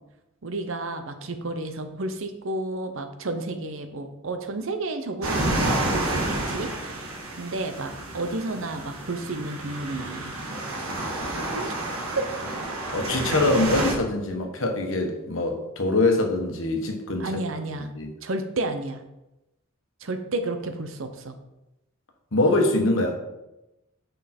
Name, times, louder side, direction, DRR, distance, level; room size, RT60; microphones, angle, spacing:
voice 1, 0.4-6.7 7.4-10.3 11.5-11.8 12.2-12.3 17.2-17.9 18.2-19.0 20.0-21.3, right 2 dB, 65° right, 7 dB, 0.7 m, -31 dB
sound 1, 5.2-13.9, right 1 dB, 90° right, 1.5 m, -29 dB
voice 2, 12.9-17.4 17.7-18.1 22.3-23.1, left 2 dB, 65° left, 3 dB, 1.2 m, -24 dB
6.5 x 5.3 x 4.3 m, 0.94 s
head